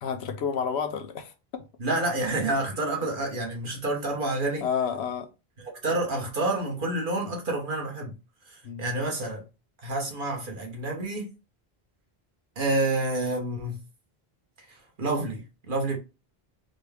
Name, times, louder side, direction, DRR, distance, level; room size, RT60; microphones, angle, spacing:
voice 1, 0.0-1.3 4.6-5.3 8.6-8.9, left 7 dB, 85° left, 0.9 m, -30 dB
voice 2, 1.8-4.6 5.6-8.2 8.5-9.4 9.8-11.3 12.6-13.8 14.6-16.0, right 2 dB, 55° right, 1.2 m, -29 dB
4.0 x 2.2 x 3.4 m
omnidirectional pair, 1.1 m